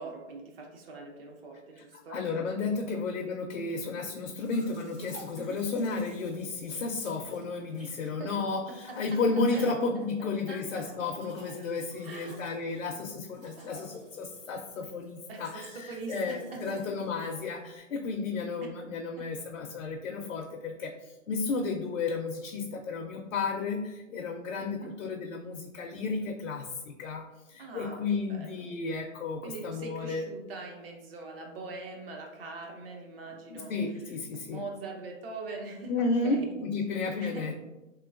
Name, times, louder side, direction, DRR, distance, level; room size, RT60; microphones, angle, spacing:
voice 1, 0.0-2.2 2.9-3.0 3.7-3.8 5.4-5.6 8.2-8.3 8.9-9.2 9.5-9.7 10.2-11.2 12.0-12.4 13.5-13.7 15.3-16.8 19.2-19.3 24.7-24.9 27.6-28.7 29.4-33.8 34.4-36.5 37.2-37.5, right 3 dB, 45° right, 1 dB, 0.7 m, -42 dB
voice 2, 1.9-27.2 27.5-30.2 33.5-34.6 35.9-37.5, left 3 dB, 65° left, 1 dB, 0.5 m, -33 dB
Domestic sounds home sounds, 4.4-17.8, equal, 10° right, 0.5 m, -55 dB
3.1 x 2.9 x 2.4 m, 1.0 s
hypercardioid pair, 140°, 40 cm